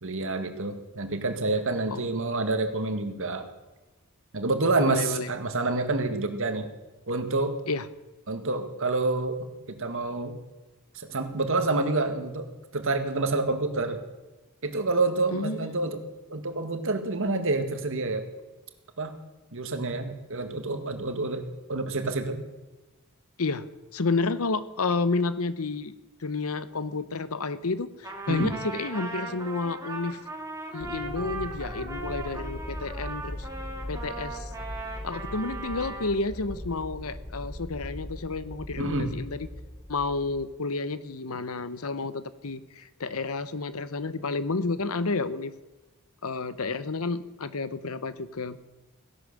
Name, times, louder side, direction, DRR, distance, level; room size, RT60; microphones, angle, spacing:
voice 1, 0.0-3.5 4.3-6.7 7.1-7.6 8.3-10.4 10.9-14.0 14.6-16.0 16.3-18.3 19.0-19.1 19.5-21.4 21.7-22.4 28.3-28.6 38.8-39.2, right 2 dB, 60° right, 7 dB, 1.8 m, -28 dB
voice 2, 4.8-5.3 7.7-7.9 15.3-15.8 23.4-25.9 26.2-30.2 30.7-33.5 33.9-34.5 35.0-39.5 39.9-45.5 46.2-48.6, left 3 dB, 70° left, 14 dB, 0.9 m, -30 dB
Trumpet, 28.0-36.1, right 2 dB, 15° right, 2.5 m, -38 dB
sound 1, 30.8-40.5, left 1 dB, 5° left, 1.0 m, -40 dB
17.0 x 11.0 x 6.7 m, 1.1 s
head